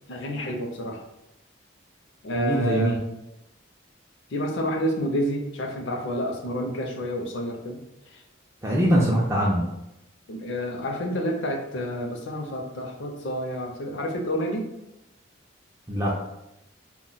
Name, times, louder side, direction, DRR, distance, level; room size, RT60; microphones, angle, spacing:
voice 1, 0.1-1.0 2.2-3.0 4.3-7.8 8.1-8.2 10.3-14.7, equal, 65° left, 2 dB, 0.5 m, -29 dB
voice 2, 2.3-3.0 8.6-9.7 15.9-16.1, right 1 dB, 15° right, -4 dB, 0.3 m, -22 dB
2.1 x 2.1 x 3.8 m, 0.87 s
head